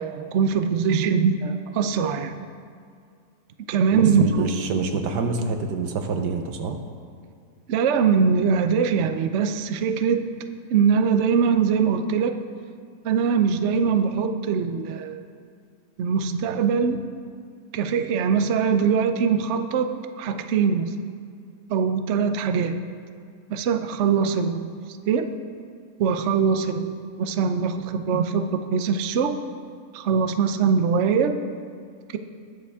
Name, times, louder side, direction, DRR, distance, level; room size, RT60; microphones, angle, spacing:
voice 1, 0.0-2.3 3.7-4.5 7.7-10.3 10.7-12.4 13.0-15.2 16.0-17.0 17.7-19.9 20.2-21.0 21.7-22.8 23.5-24.7 25.1-25.3 26.0-26.9 27.2-29.4 29.9-31.3, right 6 dB, 60° right, 8 dB, 0.8 m, -22 dB
voice 2, 3.9-6.8, right 4 dB, 80° right, 6 dB, 1.5 m, -26 dB
20.5 x 6.9 x 3.5 m, 2.2 s
omnidirectional pair, 1.8 m